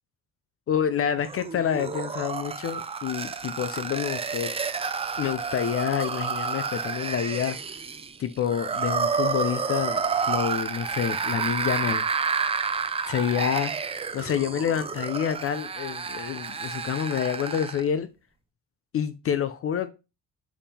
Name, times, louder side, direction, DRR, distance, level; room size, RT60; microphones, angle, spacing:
voice 1, 0.7-4.5 5.2-7.6 8.2-12.0 13.1-13.7 14.1-18.1 18.9-19.9, left 8 dB, 40° left, 0.5 m, -28 dB
sound 1, 1.2-17.9, right 5 dB, 20° right, 0.4 m, -30 dB
7.1 x 3.6 x 4.2 m
cardioid pair, 140°, 34 cm